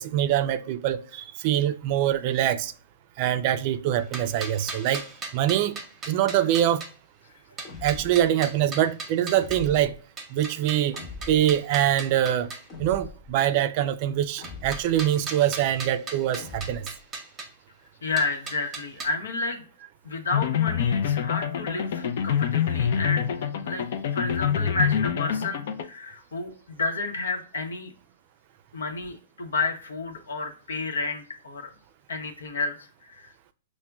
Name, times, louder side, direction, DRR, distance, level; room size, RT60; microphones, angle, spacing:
voice 1, 0.0-2.7 3.2-5.1 5.3-5.8 6.1-6.8 7.8-9.9 10.3-11.0 11.3-12.5 12.8-16.9, right 11 dB, 45° right, 0.3 m, -24 dB
sound 1, 3.9-6.9 7.6-9.7 10.2-12.7 14.4-17.5 18.2-19.1, right 3 dB, 15° right, 0.8 m, -38 dB
sound 2, 7.6-8.3 9.3-10.0 10.9-11.6 12.7-13.3 14.4-15.1 16.4-17.0, left 3 dB, 30° left, 0.9 m, -41 dB
voice 2, 18.0-19.6 20.0-23.3 23.6-23.9 24.1-27.9 28.7-31.7 32.1-33.3, left 3 dB, 85° left, 0.8 m, -31 dB
sound 3, 20.3-25.8, left 8 dB, 60° left, 0.4 m, -26 dB
5.8 x 2.1 x 2.2 m
hypercardioid pair, 135°, 0 cm